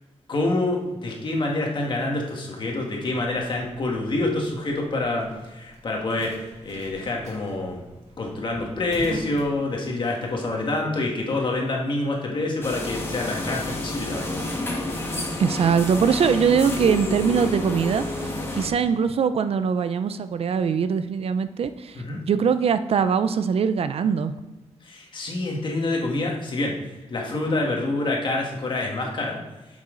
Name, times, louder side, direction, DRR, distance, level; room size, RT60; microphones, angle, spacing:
voice 1, 0.3-7.8 8.2-14.4 21.9-22.2 24.8-26.7 27.1-29.4, left 2 dB, 45° left, 0 dB, 1.7 m, -27 dB
sound 1, 3.0-10.2, right 1 dB, 80° right, 1.9 m, -43 dB
sound 2, 12.6-18.7, left 1 dB, 20° left, 1.3 m, -30 dB
voice 2, 15.4-24.3, right 6 dB, 60° right, 11 dB, 0.5 m, -22 dB
8.4 x 7.3 x 3.9 m, 1.1 s
wide cardioid pair, 170°, 11 cm